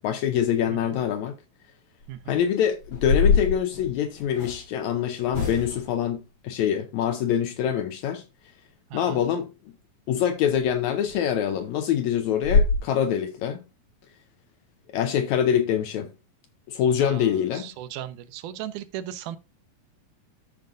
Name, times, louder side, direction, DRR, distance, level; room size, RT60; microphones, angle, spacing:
voice 1, 0.0-1.4 2.3-6.2 6.4-8.2 8.9-9.5 10.1-13.6 14.9-16.1 16.7-17.7, left 9 dB, 75° left, 1.8 m, -25 dB
voice 2, 0.7-1.0 2.1-2.4 8.9-9.2 17.0-19.4, right 11 dB, 85° right, 2.1 m, -37 dB
sound 1, 2.0-2.3 2.8-4.6 5.3-6.0 10.5-10.6 11.0-11.2 11.6-11.7 12.0-12.1 12.4-12.8, left 4 dB, 50° left, 4.3 m, -23 dB
13.0 x 5.1 x 2.5 m
omnidirectional pair, 3.7 m